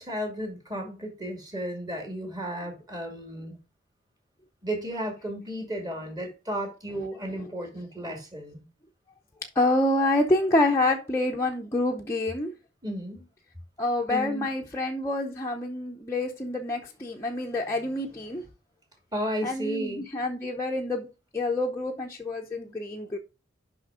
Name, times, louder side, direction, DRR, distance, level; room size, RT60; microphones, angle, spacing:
voice 1, 0.0-3.5 4.6-8.6 12.8-13.2 14.1-14.5 19.1-20.0, equal, 20° right, 2.3 m, -33 dB
voice 2, 9.6-12.5 13.8-18.4 19.4-21.1 21.3-23.2, left 2 dB, 15° left, 0.7 m, -27 dB
6.2 x 5.7 x 4.9 m
head